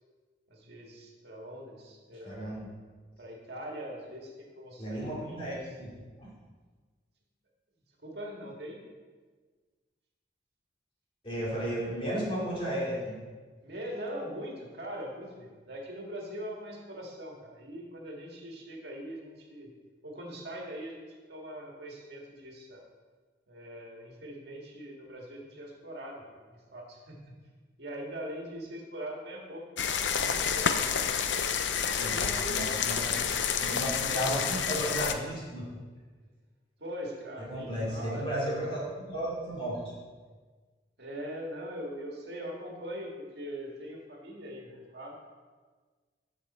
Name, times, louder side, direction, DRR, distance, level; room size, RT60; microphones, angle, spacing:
voice 1, 0.5-2.5 3.2-5.5 8.0-8.8 13.6-19.7 20.0-22.8 23.5-27.4 27.8-29.6 30.1-32.8 33.4-33.8 36.8-38.6 41.0-45.2, equal, 60° right, -1 dB, 1.8 m, -42 dB
voice 2, 2.2-2.7 4.8-6.3 11.2-13.1 32.0-35.7 37.5-39.8, equal, 30° left, -6 dB, 2.7 m, -34 dB
sound 1, 29.8-35.1, left 7 dB, 75° left, 0.6 m, -29 dB
14.0 x 5.1 x 4.2 m, 1.4 s
head